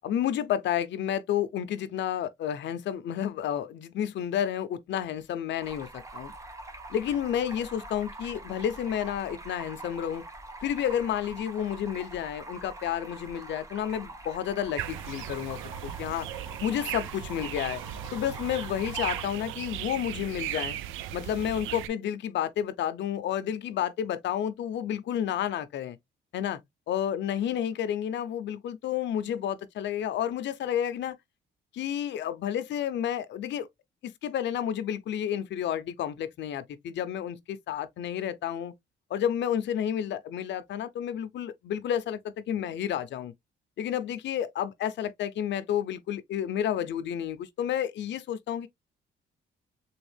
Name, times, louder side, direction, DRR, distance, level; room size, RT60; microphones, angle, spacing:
voice 1, 0.0-6.3 6.9-10.2 10.6-16.3 16.6-17.8 18.1-20.8 21.1-26.0 26.3-26.6 26.9-31.2 31.7-33.7 34.0-38.7 39.1-43.3 43.8-48.7, left 10 dB, 65° left, 0.5 m, -31 dB
Stream, 5.6-19.2, right 2 dB, 15° right, 1.2 m, -44 dB
sound 1, 14.8-21.9, right 12 dB, 90° right, 0.4 m, -37 dB
3.5 x 2.3 x 3.3 m
cardioid pair, 90°, 20 cm